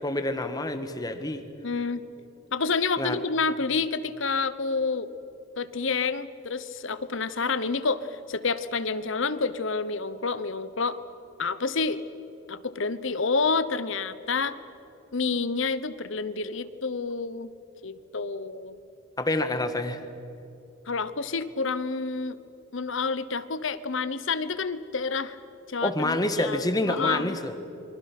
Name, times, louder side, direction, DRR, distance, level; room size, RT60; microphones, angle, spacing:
voice 1, 0.0-1.4 3.0-3.2 19.2-20.0 25.8-27.5, left 1 dB, 20° left, 8 dB, 1.4 m, -27 dB
voice 2, 1.6-2.0 2.5-5.1 5.6-11.0 11.4-12.0 12.5-14.6 15.1-17.5 17.8-18.8 20.9-22.4 22.7-25.4 25.7-26.6 26.9-27.4, left 4 dB, 65° left, 14 dB, 1.0 m, -29 dB
27.5 x 24.5 x 6.1 m, 3.0 s
head